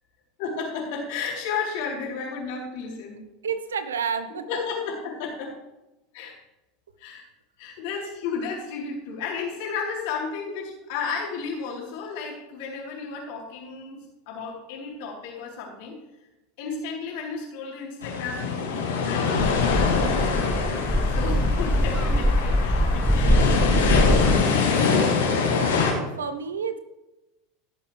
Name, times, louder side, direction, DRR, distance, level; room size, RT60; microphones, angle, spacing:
voice 1, 0.4-3.2 4.5-5.5 6.1-6.3 7.0-7.2 7.6-16.0 16.6-23.9, left 5 dB, 65° left, -3 dB, 4.1 m, -33 dB
voice 2, 3.4-4.4 25.5-26.8, right 6 dB, 85° right, 11 dB, 0.9 m, -30 dB
sound 1, 18.0-25.9, left 5 dB, 80° left, 2.7 m, -24 dB
sound 2, 19.4-24.4, equal, 5° right, 0.6 m, -23 dB
17.0 x 7.0 x 3.4 m, 0.99 s
hypercardioid pair, 85°, 0 cm